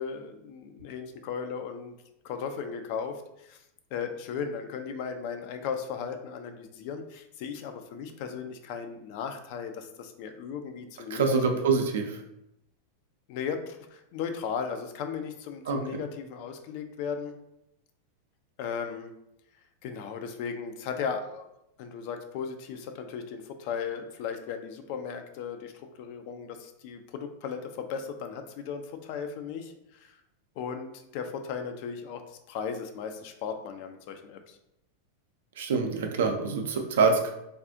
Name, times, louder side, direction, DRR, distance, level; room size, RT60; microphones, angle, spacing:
voice 1, 0.0-1.9 2.2-3.6 3.9-11.4 13.3-17.3 18.6-19.1 19.8-21.5 21.8-25.7 26.0-30.2 30.6-34.6, left 6 dB, 45° left, 6 dB, 0.3 m, -36 dB
voice 2, 11.1-12.2 15.7-16.0 35.6-37.3, right 4 dB, 60° right, 4 dB, 0.4 m, -26 dB
3.4 x 2.3 x 2.6 m, 0.84 s
figure-of-eight pair, 90°, 0 cm